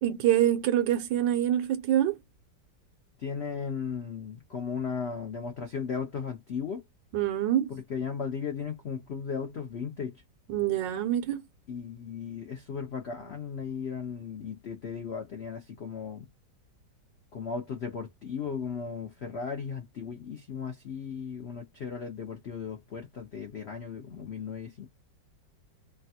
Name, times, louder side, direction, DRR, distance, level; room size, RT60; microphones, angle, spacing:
voice 1, 0.0-2.2 7.1-7.7 10.5-11.4, right 11 dB, 85° right, 1.3 m, -25 dB
voice 2, 3.2-6.8 7.7-10.2 11.7-16.3 17.3-24.9, left 6 dB, 60° left, 0.6 m, -36 dB
3.2 x 2.2 x 2.7 m
omnidirectional pair, 2.0 m